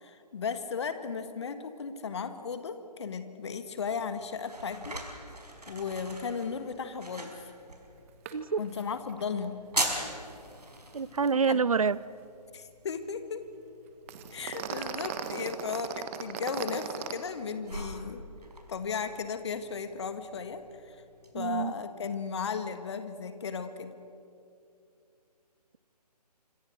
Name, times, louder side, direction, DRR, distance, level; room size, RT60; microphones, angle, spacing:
voice 1, 0.0-5.0 5.7-7.4 8.6-9.6 11.2-11.6 12.5-13.4 14.3-18.2 18.7-21.0 21.3-23.9, left 5 dB, 40° left, 10 dB, 1.8 m, -35 dB
sound 1, 3.8-21.3, right 1 dB, 75° right, 5.1 m, -42 dB
sound 2, 8.3-8.4 8.6-8.8 9.1-9.2 14.1-17.1, right 9 dB, 20° right, 1.2 m, -37 dB
voice 2, 10.9-12.0 21.4-21.7, right 5 dB, 55° right, 20 dB, 0.7 m, -27 dB
26.0 x 25.0 x 6.3 m, 2.5 s
figure-of-eight pair, 140°, 21 cm